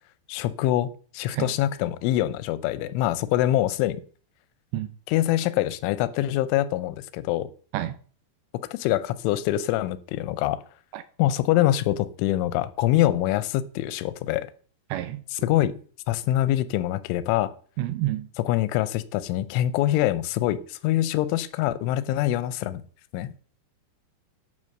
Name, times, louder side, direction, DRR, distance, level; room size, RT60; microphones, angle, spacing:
voice 1, 0.3-4.0 5.1-7.5 8.7-10.6 11.2-14.5 15.3-15.7 16.1-17.5 18.4-22.8 23.1-23.3, left 13 dB, 90° left, 3.2 m, -24 dB
voice 2, 14.9-15.2 17.8-18.3, right 14 dB, 80° right, 2.7 m, -28 dB
11.0 x 5.8 x 6.5 m
omnidirectional pair, 5.4 m